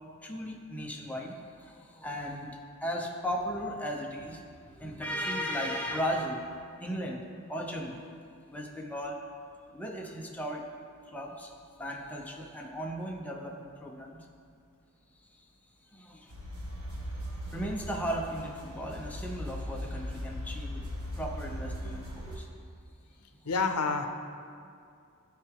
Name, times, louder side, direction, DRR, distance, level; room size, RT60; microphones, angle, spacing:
voice 1, 0.2-8.0 8.5-9.2 9.7-10.7 11.1-11.5 11.8-14.3 15.9-16.3 17.5-20.9 21.2-22.5, equal, 5° left, 0 dB, 0.7 m, -36 dB
sound 1, 16.3-22.4, equal, 80° right, 1.5 m, -39 dB
voice 2, 23.4-24.1, left 4 dB, 80° left, 6 dB, 0.7 m, -28 dB
13.0 x 4.7 x 3.6 m, 2.3 s
head